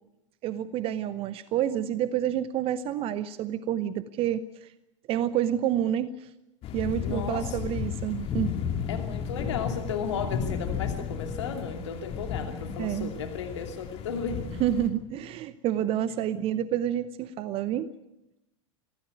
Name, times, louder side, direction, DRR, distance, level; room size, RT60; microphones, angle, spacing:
voice 1, 0.4-4.7 5.1-6.3 6.7-8.5 12.8-13.1 14.6-17.9, right 11 dB, 35° right, 15 dB, 0.9 m, -28 dB
sound 1, 6.6-14.9, left 7 dB, 35° left, 2.8 m, -33 dB
voice 2, 7.0-7.8 8.9-14.5, left 6 dB, 60° left, 5 dB, 2.6 m, -34 dB
24.0 x 16.5 x 9.3 m, 0.89 s
figure-of-eight pair, 85°, 17 cm